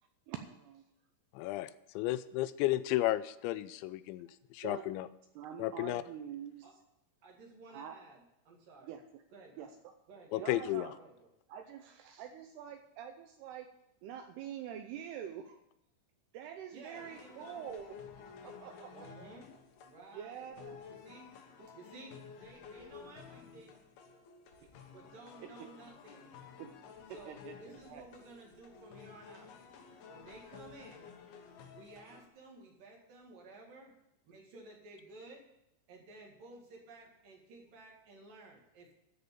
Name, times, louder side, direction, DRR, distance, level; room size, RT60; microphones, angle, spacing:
voice 1, 0.3-0.8 4.6-4.9 5.4-6.7 7.7-8.0 8.8-9.0 9.6-9.7 10.4-11.0 11.5-13.7 14.0-15.6 16.3-19.3 20.1-20.8 21.6-21.7 25.4-25.7 26.6-26.7 27.1-28.0, right 9 dB, 80° right, 6 dB, 2.4 m, -46 dB
voice 2, 1.3-1.7 2.0-4.3 4.6-5.1 5.6-6.0 10.3-10.9, left 15 dB, 85° left, 14 dB, 2.9 m, -33 dB
voice 3, 7.2-9.0 9.3-9.7 10.1-10.7 11.0-11.3 16.7-17.7 18.9-19.5 19.8-20.6 21.0-21.3 21.7-22.1 22.4-23.8 24.9-26.3 27.1-29.6 30.1-31.1 31.7-33.9 34.3-35.4 35.9-38.9, right 2 dB, 55° right, 0 dB, 3.2 m, -54 dB
sound 1, 16.9-32.3, left 6 dB, 70° left, 2.7 m, -53 dB
13.5 x 5.2 x 8.4 m, 0.83 s
omnidirectional pair, 5.2 m